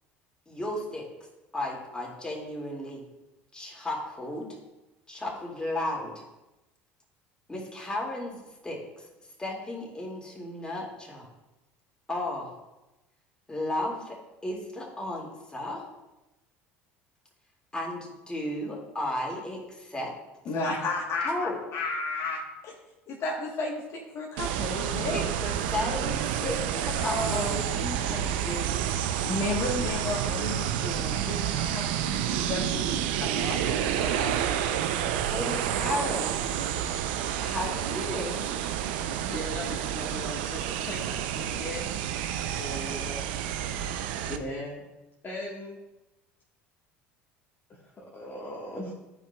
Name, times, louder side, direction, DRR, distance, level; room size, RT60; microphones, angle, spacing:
voice 1, 0.5-1.1 1.5-3.0 3.5-4.5 5.1-6.2 7.5-9.0 9.4-11.3 12.1-12.5 13.5-15.8 17.7-20.1 21.2-21.6 25.1-27.6 35.3-36.4 37.4-38.4, left 1 dB, 15° left, -2 dB, 2.3 m, -34 dB
voice 2, 20.5-22.8 23.1-25.2 27.0-28.9 29.2-34.4, left 2 dB, 50° left, -2 dB, 1.2 m, -33 dB
sound 1, 24.4-44.4, right 10 dB, 80° right, 0.5 m, -29 dB
voice 3, 39.3-41.9 42.5-43.2 44.3-44.8 45.2-45.8 47.7-48.9, left 1 dB, 35° left, -4 dB, 1.5 m, -38 dB
11.5 x 5.1 x 2.3 m, 1.0 s
hypercardioid pair, 80°, 6 cm